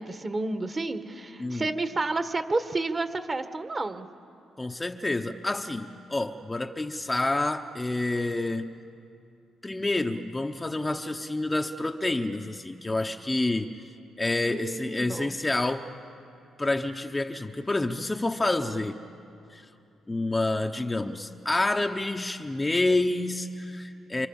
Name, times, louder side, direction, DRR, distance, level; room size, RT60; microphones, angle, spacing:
voice 1, 0.0-4.1 14.4-15.3, right 2 dB, 30° right, 8 dB, 1.5 m, -30 dB
voice 2, 1.4-1.7 4.6-8.7 9.6-13.7 14.2-15.9 16.6-19.0 19.5-19.6 20.1-24.3, left 2 dB, 15° left, 4 dB, 1.0 m, -28 dB
27.5 x 25.5 x 7.2 m, 2.6 s
cardioid pair, 90°, 0 cm